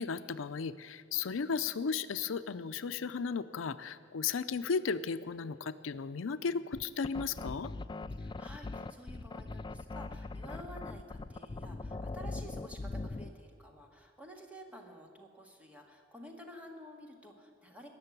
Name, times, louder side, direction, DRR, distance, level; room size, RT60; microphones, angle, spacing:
voice 1, 0.0-7.7, left 5 dB, 85° left, 12 dB, 0.5 m, -35 dB
sound 1, 6.7-13.4, left 3 dB, 25° left, 0.3 m, -41 dB
voice 2, 8.1-17.9, equal, 5° right, 2 dB, 1.8 m, -51 dB
20.0 x 6.8 x 9.6 m, 2.2 s
head